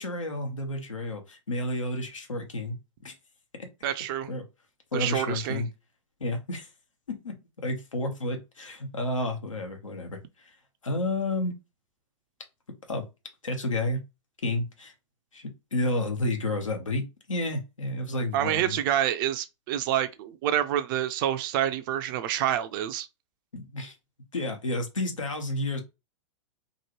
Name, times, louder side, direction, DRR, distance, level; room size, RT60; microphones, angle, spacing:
voice 1, 0.0-2.8 3.0-3.1 4.3-4.4 4.9-5.7 6.2-6.7 7.1-10.5 10.8-11.5 12.9-13.0 13.4-14.0 14.4-14.9 15.3-18.8 23.5-24.0 24.3-25.8, left 2 dB, 90° left, 1.0 m, -31 dB
voice 2, 3.8-4.3 4.9-5.6 18.3-23.1, right 11 dB, 40° right, 0.4 m, -27 dB
2.9 x 2.6 x 2.9 m
hypercardioid pair, 110°, 16 cm